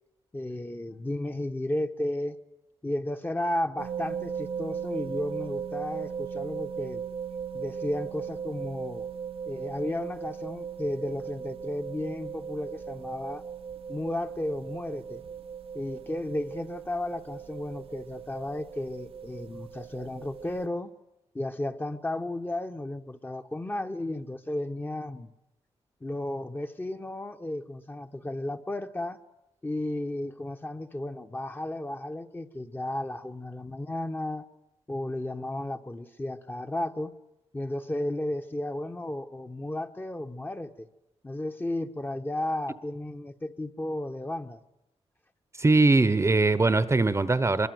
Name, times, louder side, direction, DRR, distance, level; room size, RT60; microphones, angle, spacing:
voice 1, 0.3-2.4 2.8-7.0 7.5-9.1 9.5-13.4 13.9-15.2 15.7-20.9 21.3-25.3 26.0-29.2 29.6-34.4 34.9-37.1 37.5-40.9 41.2-44.6, left 1 dB, 20° left, 1.2 m, -33 dB
sound 1, 3.8-20.7, right 7 dB, 60° right, 0.9 m, -38 dB
voice 2, 45.6-47.7, right 3 dB, 25° right, 1.0 m, -21 dB
24.0 x 22.0 x 7.9 m
cardioid pair, 90°, 11 cm